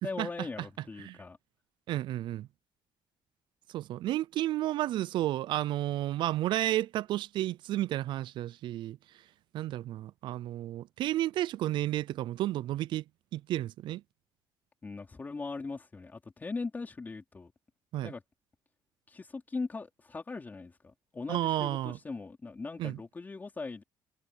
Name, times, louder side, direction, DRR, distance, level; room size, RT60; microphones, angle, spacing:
voice 1, 0.0-1.4 14.8-17.5 18.0-18.2 19.1-23.8, left 3 dB, 20° left, 4.3 m, -40 dB
voice 2, 1.9-2.5 3.7-9.0 9.5-13.0 13.3-14.0 17.9-18.1 21.3-22.0 22.8-23.0, right 14 dB, 65° right, 0.4 m, -32 dB
cardioid pair, 140°, 9 cm